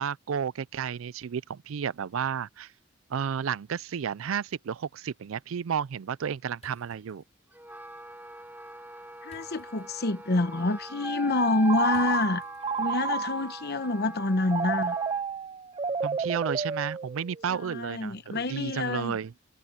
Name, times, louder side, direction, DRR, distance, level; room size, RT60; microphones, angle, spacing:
voice 1, 0.0-2.7 3.1-7.2 16.0-19.3, right 7 dB, 90° right, 0.4 m, -32 dB
sound 1, 6.6-13.1, left 2 dB, 35° left, 5.3 m, -62 dB
Wind instrument woodwind instrument, 7.5-15.2, right 1 dB, 10° right, 4.0 m, -41 dB
voice 2, 9.2-12.4 12.8-15.0 17.5-19.2, left 2 dB, 55° left, 1.0 m, -27 dB
Telephone, 11.6-13.6 14.5-17.5, right 5 dB, 30° right, 0.4 m, -31 dB
head